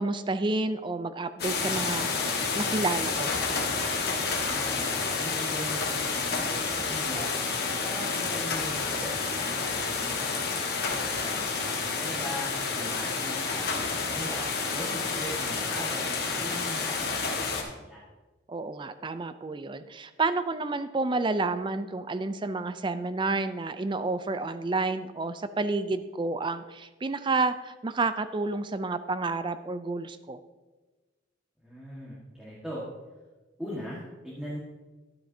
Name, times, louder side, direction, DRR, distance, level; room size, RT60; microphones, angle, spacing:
voice 1, 0.0-2.1 2.5-3.4 18.5-30.4, right 3 dB, 25° right, 12 dB, 0.4 m, -30 dB
sound 1, 1.4-17.6, left 4 dB, 55° left, 1.4 m, -29 dB
voice 2, 4.3-7.3 7.8-10.2 10.9-18.0 31.6-32.9 33.6-34.6, equal, 5° right, -7 dB, 1.6 m, -40 dB
11.5 x 9.2 x 2.8 m, 1.2 s
head